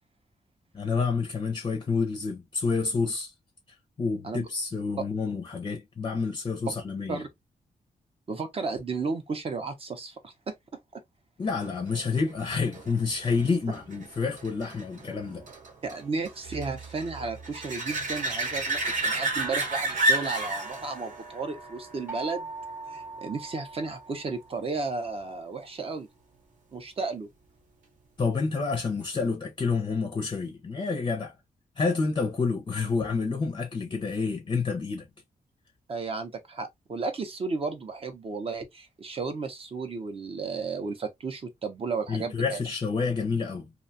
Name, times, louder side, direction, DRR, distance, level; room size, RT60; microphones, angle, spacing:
voice 1, 0.7-3.3 4.0-7.2 11.4-15.4 28.2-31.3 31.8-35.1 42.1-43.7, left 4 dB, 30° left, 0.5 m, -28 dB
voice 2, 8.3-10.5 15.8-22.5 22.9-26.1 26.7-27.3 35.9-42.6, right 4 dB, 40° right, 0.5 m, -33 dB
sound 1, 11.9-23.2 28.8-28.9, right 2 dB, 55° right, 0.9 m, -32 dB
sound 2, 22.1-24.9, right 3 dB, 10° right, 0.8 m, -41 dB
2.5 x 2.2 x 2.6 m
wide cardioid pair, 140°, 15 cm